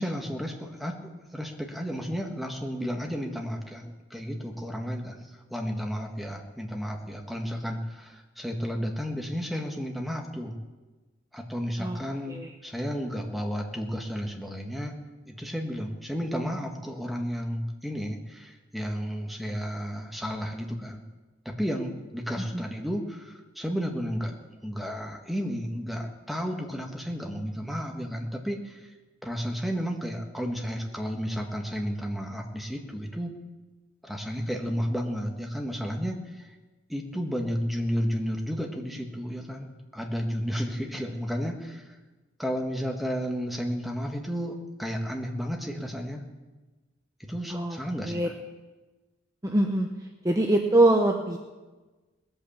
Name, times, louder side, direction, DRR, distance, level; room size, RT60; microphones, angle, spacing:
voice 1, 0.0-10.5 11.3-14.9 15.3-21.0 21.4-24.3 24.6-28.9 29.2-33.3 34.0-36.5 36.9-41.9 42.4-46.2 47.2-48.3, equal, ahead, 1 dB, 1.7 m, -32 dB
voice 2, 49.4-49.9 50.2-51.4, right 1 dB, 15° right, 2 dB, 0.9 m, -23 dB
20.0 x 8.8 x 7.4 m, 1.2 s
head